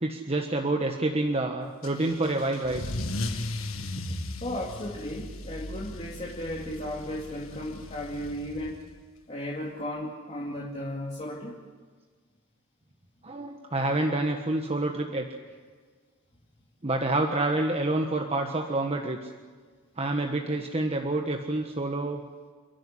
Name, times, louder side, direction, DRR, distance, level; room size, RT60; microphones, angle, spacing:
voice 1, 0.0-2.8 3.8-4.0 13.2-15.3 16.8-19.3 20.0-22.2, right 2 dB, 30° right, 3 dB, 1.4 m, -28 dB
Car / Engine starting / Accelerating revving vroom, 1.8-9.0, left 2 dB, 70° left, 1.8 m, -37 dB
voice 2, 4.4-8.8 9.3-11.6, left 1 dB, 30° left, -3 dB, 2.6 m, -35 dB
29.5 x 12.0 x 10.0 m, 1.5 s
head